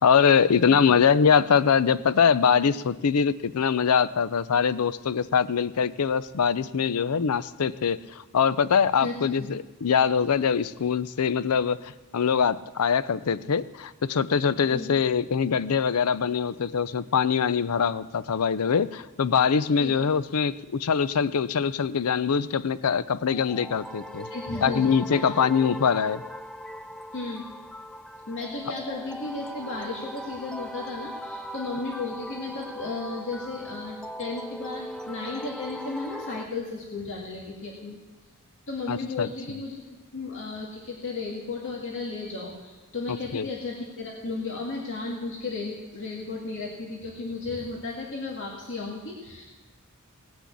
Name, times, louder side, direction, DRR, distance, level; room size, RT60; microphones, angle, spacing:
voice 1, 0.0-24.3 24.6-26.2 38.9-39.3 43.3-43.5, left 6 dB, 80° left, 16 dB, 0.5 m, -23 dB
voice 2, 9.0-9.5 14.7-14.9 19.8-19.9 24.3-25.3 27.1-27.4 28.3-38.0 38.7-39.8 40.1-49.5, left 3 dB, 60° left, -3 dB, 2.1 m, -34 dB
sound 1, 23.3-36.5, equal, 5° left, 0.4 m, -39 dB
18.5 x 6.2 x 8.3 m, 1.2 s
head